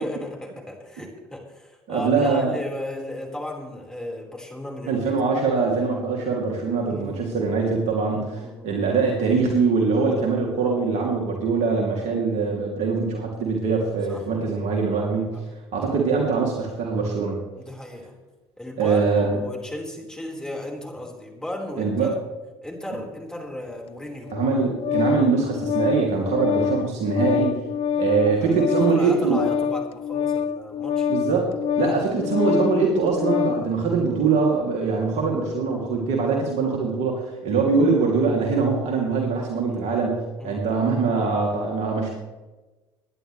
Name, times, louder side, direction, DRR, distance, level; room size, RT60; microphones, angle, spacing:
voice 1, 0.0-5.0 6.8-7.1 8.1-8.7 14.1-14.2 17.6-18.2 18.6-22.1 22.6-24.3 27.9-31.1 31.8-31.9 39.6-40.0 40.4-40.6, left 1 dB, 5° left, 0 dB, 4.5 m, -35 dB
voice 2, 1.9-2.6 4.9-15.3 15.7-17.4 18.8-19.4 21.8-22.1 24.3-27.6 28.0-29.4 31.1-31.5 31.8-42.1, right 4 dB, 60° right, -1 dB, 2.9 m, -23 dB
Organ, 24.3-33.7, left 8 dB, 50° left, 0.6 m, -26 dB
23.0 x 10.5 x 3.3 m, 1.1 s
hypercardioid pair, 65°, 13 cm